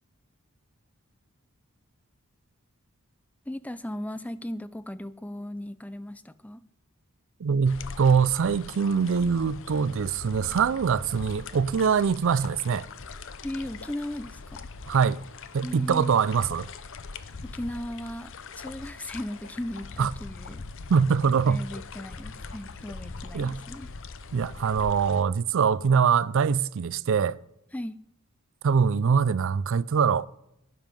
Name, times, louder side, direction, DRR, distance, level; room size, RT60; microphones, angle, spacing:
voice 1, 3.5-6.6 13.4-14.6 15.6-16.1 17.4-20.6 21.5-23.9 27.7-28.0, left 1 dB, 5° left, 0.4 m, -37 dB
voice 2, 7.4-12.9 14.9-15.2 15.5-16.7 20.0-20.1 20.9-21.6 23.3-23.6 24.3-27.4 28.6-30.3, right 6 dB, 60° right, 0.4 m, -23 dB
sound 1, 7.6-25.2, left 4 dB, 60° left, 0.7 m, -42 dB
12.0 x 9.5 x 5.3 m
head